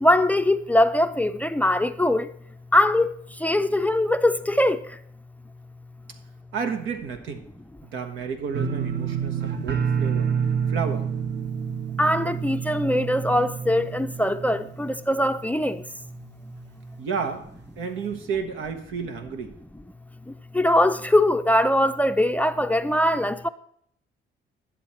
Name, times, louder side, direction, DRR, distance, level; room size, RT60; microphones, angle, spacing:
voice 1, 0.0-2.3 2.7-3.1 3.4-4.8 12.0-15.8 20.5-23.5, left 1 dB, 5° left, 0.4 m, -21 dB
voice 2, 6.5-7.5 7.8-10.3 10.7-11.1 17.0-17.5 17.8-19.5, right 6 dB, 85° right, 1.3 m, -31 dB
sound 1, 8.5-15.4 15.7-16.2 16.6-16.7, right 7 dB, 60° right, 1.1 m, -28 dB
11.0 x 7.2 x 4.3 m
cardioid pair, 90°, 20 cm